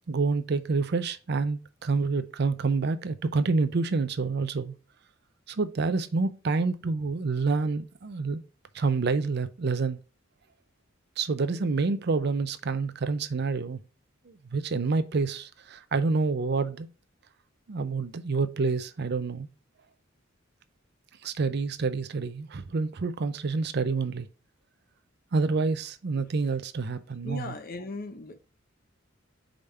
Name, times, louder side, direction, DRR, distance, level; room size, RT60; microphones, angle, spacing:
voice 1, 0.1-4.7 5.5-8.4 8.7-10.0 11.2-13.8 14.3-16.9 17.7-19.5 21.2-24.3 25.3-27.5, right 4 dB, 55° right, 0.5 m, -28 dB
voice 2, 27.2-28.4, left 2 dB, 45° left, 0.7 m, -38 dB
5.1 x 3.4 x 5.4 m
head